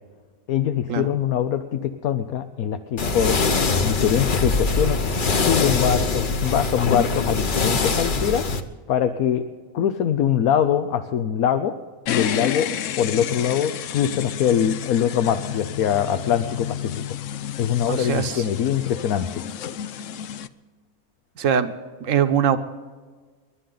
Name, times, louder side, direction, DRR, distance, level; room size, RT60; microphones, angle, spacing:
voice 1, 0.5-3.4 3.8-5.0 5.5-8.5 8.9-9.4 9.7-11.7 12.1-12.7 13.0-17.0 17.6-19.4, left 9 dB, 90° left, 8 dB, 1.2 m, -23 dB
sound 1, 3.0-8.6, left 3 dB, 40° left, 1.0 m, -22 dB
sound 2, 12.1-20.5, left 10 dB, 70° left, 0.9 m, -31 dB
voice 2, 17.9-18.4 21.4-21.7 22.0-22.6, right 8 dB, 65° right, 9 dB, 1.3 m, -22 dB
30.0 x 12.0 x 3.9 m, 1.5 s
omnidirectional pair, 1.5 m